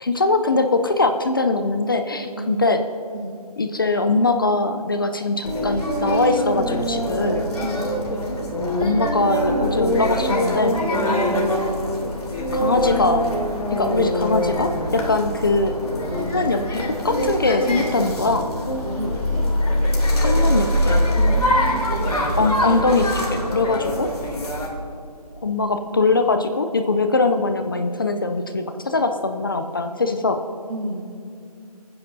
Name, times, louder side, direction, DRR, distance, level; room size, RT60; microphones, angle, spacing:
voice 1, 0.0-2.8 3.6-7.5 8.8-10.8 12.5-13.2 13.7-15.8 16.2-18.5 20.2-21.0 22.4-24.1 25.4-30.4, left 3 dB, 35° left, 7 dB, 0.5 m, -21 dB
voice 2, 2.3-2.7 3.1-3.4 7.6-7.9 11.0-11.4 18.8-19.5 21.1-22.4 30.7-31.2, right 1 dB, 55° right, -3 dB, 3.8 m, -31 dB
sound 1, 5.4-24.7, equal, 75° left, 2.8 m, -23 dB
Mallet percussion, 20.3-22.4, right 2 dB, 35° right, 2.3 m, -42 dB
26.5 x 9.9 x 2.7 m, 2.4 s
hypercardioid pair, 170°, 20 cm